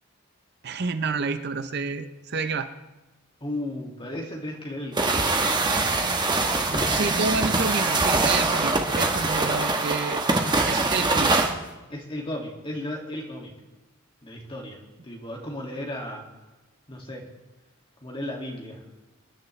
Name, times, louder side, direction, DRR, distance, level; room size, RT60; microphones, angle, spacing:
voice 1, 0.6-2.7 6.9-10.2 10.7-11.4, right 4 dB, 50° right, 10 dB, 0.6 m, -29 dB
voice 2, 3.4-5.3 5.7-7.0 11.9-13.5 14.2-16.2 16.9-17.3 18.0-18.8, left 1 dB, 25° left, -1 dB, 2.1 m, -35 dB
sound 1, 5.0-11.5, right 3 dB, 20° right, 1.1 m, -23 dB
26.0 x 10.5 x 3.2 m, 1.1 s
head